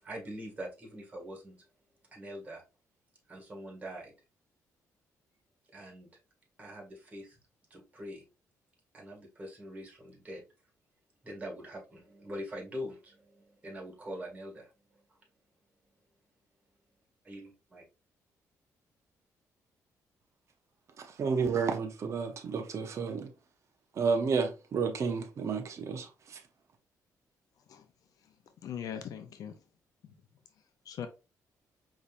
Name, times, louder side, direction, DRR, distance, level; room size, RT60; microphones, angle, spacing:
voice 1, 0.0-1.6 2.1-2.6 3.3-4.1 5.7-6.1 6.6-7.4 7.7-8.2 8.9-10.4 11.2-15.2 17.2-17.8, equal, 20° right, 2.0 m, -43 dB
voice 2, 21.0-23.3 24.0-26.4, right 5 dB, 50° right, 0.7 m, -31 dB
voice 3, 28.6-29.6 30.9-31.1, left 9 dB, 70° left, 0.5 m, -39 dB
5.3 x 3.2 x 2.5 m
cardioid pair, 115°, 6 cm